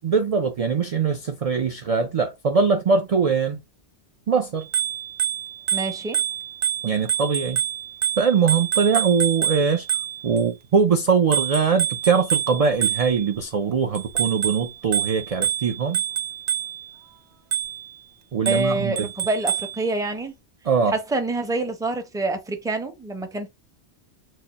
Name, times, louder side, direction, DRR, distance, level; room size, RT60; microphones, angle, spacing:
voice 1, 0.0-3.6 4.3-4.7 6.8-7.6 8.2-9.9 10.2-16.0 18.3-19.1 20.6-20.9, right 5 dB, 50° right, 0.5 m, -22 dB
Bicycle bell, 4.6-10.4 11.3-13.4 14.0-16.9 17.5-17.9 18.5-19.8, right 10 dB, 75° right, 0.8 m, -27 dB
voice 2, 5.7-6.2 18.5-20.3 20.9-23.5, right 2 dB, 5° right, 0.6 m, -26 dB
4.8 x 2.1 x 4.0 m
omnidirectional pair, 1.1 m